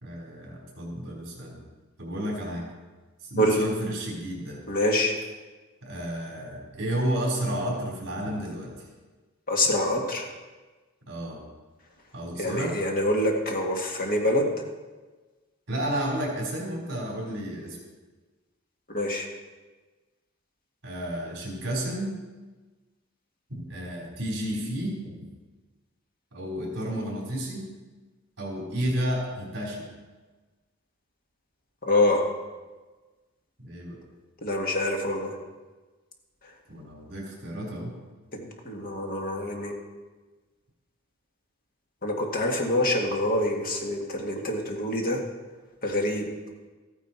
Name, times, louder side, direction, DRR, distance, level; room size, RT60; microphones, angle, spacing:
voice 1, 0.0-1.6 2.0-2.6 3.2-4.6 5.8-8.7 11.1-11.4 12.1-12.7 15.7-17.8 20.8-22.1 23.5-25.2 26.3-27.7 28.4-29.8 33.6-34.0 36.7-37.9, right 1 dB, 55° right, -3 dB, 4.2 m, -31 dB
voice 2, 4.7-5.1 9.5-10.2 12.4-14.5 18.9-19.3 31.8-32.2 34.4-35.3 38.3-39.7 42.0-45.2 45.8-46.2, left 1 dB, 45° left, 1 dB, 1.8 m, -25 dB
14.0 x 9.6 x 4.5 m, 1.3 s
head